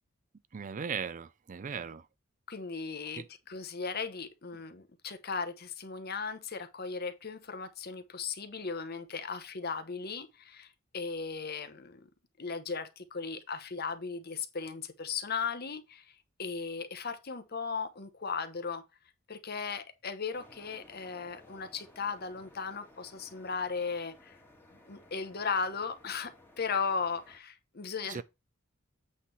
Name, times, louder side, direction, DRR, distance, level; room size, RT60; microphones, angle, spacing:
voice 1, 0.5-2.1 3.1-3.3 28.1-28.2, right 6 dB, 40° right, 0.4 m, -37 dB
voice 2, 2.5-12.1 12.4-18.8 19.3-24.4 24.9-28.2, left 5 dB, 50° left, 1.0 m, -37 dB
sound 1, 20.3-27.4, left 1 dB, 10° left, 1.8 m, -58 dB
8.4 x 3.3 x 5.7 m
head